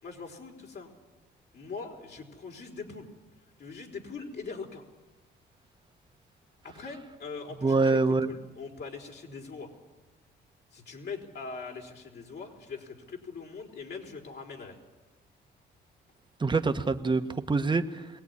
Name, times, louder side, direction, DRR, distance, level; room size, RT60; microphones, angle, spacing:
voice 1, 0.0-0.9 1.5-3.1 3.6-4.8 6.6-9.7 10.7-14.8, left 4 dB, 60° left, 1 dB, 4.5 m, -41 dB
voice 2, 7.6-8.3 16.4-18.1, right 3 dB, 25° right, 8 dB, 1.4 m, -25 dB
23.0 x 18.0 x 9.8 m, 1.1 s
cardioid pair, 90°, 20 cm